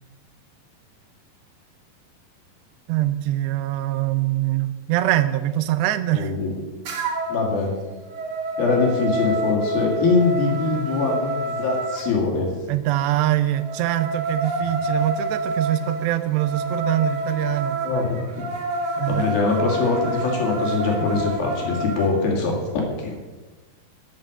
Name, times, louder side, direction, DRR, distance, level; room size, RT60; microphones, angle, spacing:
voice 1, 2.9-6.3 12.7-17.8 19.0-19.3, right 14 dB, 85° right, 11 dB, 2.9 m, -23 dB
voice 2, 6.1-6.5 7.3-7.8 8.6-12.5 17.8-18.5 19.1-23.2, left 4 dB, 60° left, 0 dB, 3.8 m, -23 dB
sound 1, 6.8-7.5 7.9-12.1 13.5-22.1, right 1 dB, 60° right, 1.8 m, -28 dB
13.0 x 7.7 x 6.5 m, 1.3 s
omnidirectional pair, 4.9 m